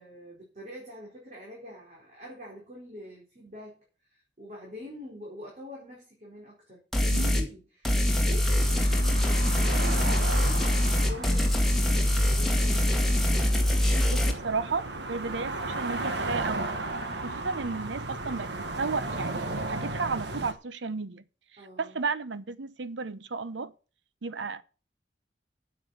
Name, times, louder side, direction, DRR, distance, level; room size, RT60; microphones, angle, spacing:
voice 1, 0.0-10.7 11.1-13.4 21.6-22.0, left 1 dB, 40° right, 4.4 m, -45 dB
sound 1, 6.9-7.5 7.8-14.3, left 1 dB, ahead, 1.9 m, -24 dB
voice 2, 7.1-7.4 14.1-16.7 17.2-21.2 21.5-23.7 24.2-24.6, right 4 dB, 90° right, 0.8 m, -33 dB
sound 2, 8.6-20.5, right 2 dB, 70° right, 1.4 m, -35 dB
9.4 x 7.7 x 6.9 m
head